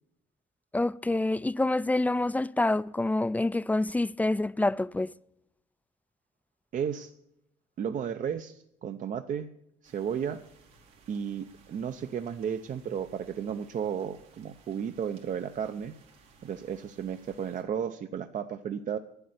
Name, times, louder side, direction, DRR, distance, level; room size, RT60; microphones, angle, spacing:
voice 1, 0.7-5.1, left 2 dB, 10° left, 0.3 m, -27 dB
voice 2, 6.7-7.1 7.8-9.5 9.8-10.4 11.1-15.9 16.4-19.0, right 8 dB, 45° right, 0.6 m, -33 dB
sound 1, 9.8-17.6, right 4 dB, 90° right, 2.8 m, -59 dB
10.0 x 8.0 x 7.9 m
supercardioid pair, 75°, 18 cm